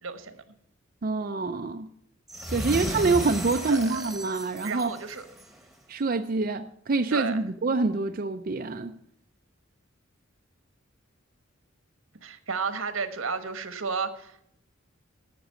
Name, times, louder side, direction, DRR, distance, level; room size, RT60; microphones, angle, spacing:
voice 1, 0.0-0.4 3.7-4.1 4.6-5.2 7.1-7.4 12.2-14.5, right 5 dB, 80° right, 10 dB, 1.2 m, -32 dB
voice 2, 1.0-1.9 2.5-5.0 5.9-9.0, right 3 dB, 45° right, 6 dB, 0.5 m, -26 dB
sound 1, 2.3-5.6, equal, ahead, 1.1 m, -34 dB
13.0 x 6.1 x 7.5 m, 0.74 s
head